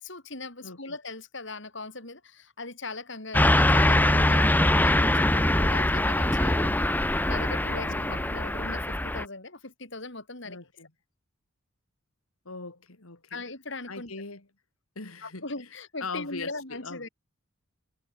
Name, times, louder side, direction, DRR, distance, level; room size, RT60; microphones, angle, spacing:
voice 1, 0.0-6.8 7.1-10.6 13.3-14.1 15.2-17.1, left 3 dB, 60° left, 3.8 m, -39 dB
voice 2, 0.6-1.0 7.8-8.3 10.4-10.9 12.4-13.4 13.9-14.4 14.9-15.4 16.0-17.1, left 3 dB, 90° left, 3.0 m, -40 dB
Car passing by / Truck, 3.3-9.2, left 1 dB, 10° left, 1.1 m, -23 dB
head